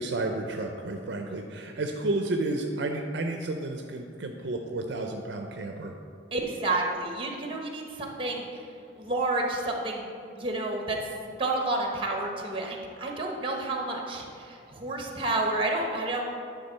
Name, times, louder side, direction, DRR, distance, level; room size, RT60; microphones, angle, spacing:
voice 1, 0.0-5.9, right 2 dB, 65° right, 4 dB, 0.5 m, -31 dB
voice 2, 6.3-8.5 9.0-10.1 10.4-11.1 11.4-16.2, right 2 dB, 30° right, 1 dB, 1.0 m, -30 dB
9.7 x 3.8 x 5.5 m, 2.5 s
head